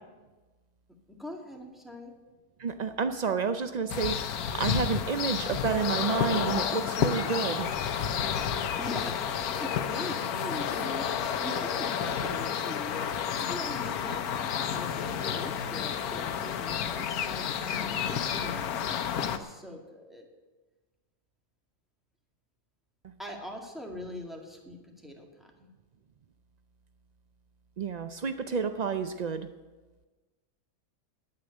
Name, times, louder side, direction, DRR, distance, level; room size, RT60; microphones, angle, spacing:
voice 1, 1.2-2.1 8.6-11.1 11.4-14.2 14.6-20.3 23.2-25.7, left 1 dB, ahead, 1 dB, 2.0 m, -41 dB
voice 2, 2.6-7.7 27.8-29.5, right 5 dB, 80° right, 9 dB, 0.3 m, -30 dB
sound 1, 3.9-19.4, left 8 dB, 85° left, 1.3 m, -31 dB
9.4 x 8.9 x 9.9 m, 1.2 s
omnidirectional pair, 1.5 m